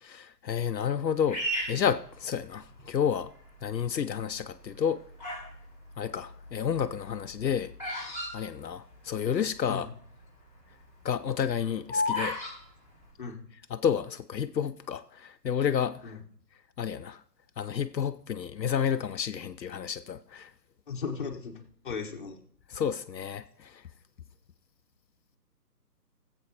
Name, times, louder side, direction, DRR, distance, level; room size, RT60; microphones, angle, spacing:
voice 1, 0.0-3.3 3.6-5.0 6.0-7.7 8.3-9.9 11.0-12.4 13.7-16.1 16.8-17.2 17.6-20.5 22.7-23.7, left 8 dB, 85° left, 0.7 m, -30 dB
Bird vocalization bird call bird song, 1.3-2.8 3.4-3.9 4.6-5.5 5.8-9.3 9.6-9.7 9.8-10.2 10.6-12.5, left 1 dB, 5° right, 3.3 m, -33 dB
voice 2, 20.9-21.5 21.8-22.4, left 5 dB, 30° left, 1.2 m, -36 dB
19.0 x 7.8 x 2.9 m
figure-of-eight pair, 155°, 49 cm